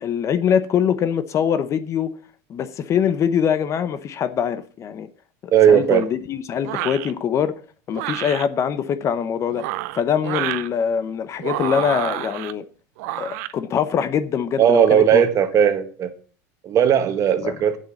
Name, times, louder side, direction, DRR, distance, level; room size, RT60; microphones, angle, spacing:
voice 1, 0.0-2.1 2.5-5.1 5.4-7.5 7.9-9.7 9.9-12.6 13.2-15.2 17.4-17.5, left 8 dB, 35° left, 0.8 m, -23 dB
voice 2, 5.5-6.1 14.6-16.1 16.6-17.8, right 9 dB, 40° right, 1.3 m, -17 dB
sound 1, 6.6-7.1 7.9-8.5 9.5-10.7 11.4-12.5 13.0-13.5, right 16 dB, 75° right, 0.7 m, -28 dB
8.2 x 7.4 x 7.1 m
supercardioid pair, 130°, 9 cm